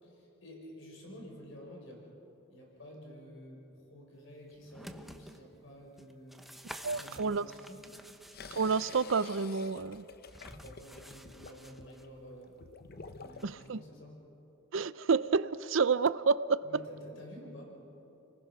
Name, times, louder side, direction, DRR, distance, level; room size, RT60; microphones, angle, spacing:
voice 1, 0.0-2.0 2.5-6.4 6.9-7.9 10.4-12.6 13.2-14.2 16.6-17.7, equal, 65° left, -1 dB, 5.5 m, -50 dB
sound 1, 4.5-5.4 6.0-8.9 10.3-12.0 13.4-13.5, equal, ahead, 0.8 m, -50 dB
voice 2, 6.8-7.5 8.5-10.1 13.4-13.8 14.7-16.8, right 5 dB, 65° right, 16 dB, 0.6 m, -29 dB
sound 2, 8.3-13.7, left 4 dB, 50° left, 0.8 m, -49 dB
30.0 x 20.0 x 6.1 m, 2.9 s
head